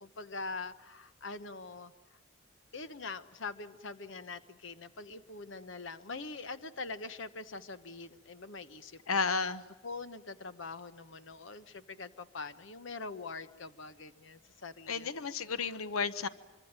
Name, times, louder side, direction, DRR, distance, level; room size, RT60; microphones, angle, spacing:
voice 1, 0.0-2.2 2.7-9.2 9.8-15.3 15.6-15.8, left 3 dB, 65° left, 12 dB, 1.0 m, -44 dB
voice 2, 9.1-9.6 14.9-16.3, left 5 dB, 90° left, 13 dB, 1.0 m, -32 dB
25.5 x 24.0 x 8.9 m, 1.1 s
head